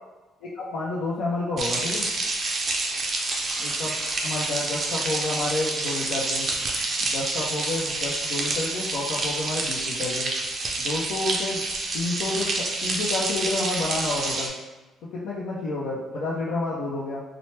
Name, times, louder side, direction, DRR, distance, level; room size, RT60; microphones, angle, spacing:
voice 1, 0.4-2.0 3.6-3.9 4.2-6.5 7.0-10.3 10.8-11.6 11.9-14.5 15.1-17.2, left 2 dB, 75° left, -7 dB, 0.6 m, -30 dB
sound 1, 1.6-14.5, right 2 dB, 30° right, 0.4 m, -28 dB
4.3 x 2.0 x 3.2 m, 1.1 s
cardioid pair, 170°, 0 cm